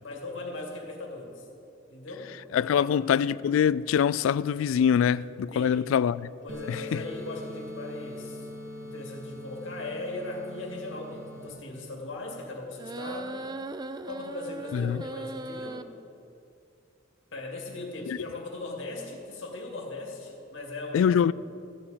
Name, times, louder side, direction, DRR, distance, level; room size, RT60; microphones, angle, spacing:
voice 1, 0.0-1.4 1.9-2.4 2.7-3.0 5.5-5.8 6.4-8.5 8.8-13.4 14.1-15.9 17.3-21.3, left 2 dB, 70° left, 2.2 m, -39 dB
voice 2, 2.5-6.3 6.7-7.0 14.7-15.0 18.1-18.2 20.9-21.3, left 8 dB, 85° left, 0.3 m, -24 dB
sound 1, 6.5-11.5, left 1 dB, 70° right, 2.4 m, -41 dB
sound 2, 12.8-15.8, right 2 dB, 20° right, 0.4 m, -38 dB
14.5 x 9.8 x 5.1 m
head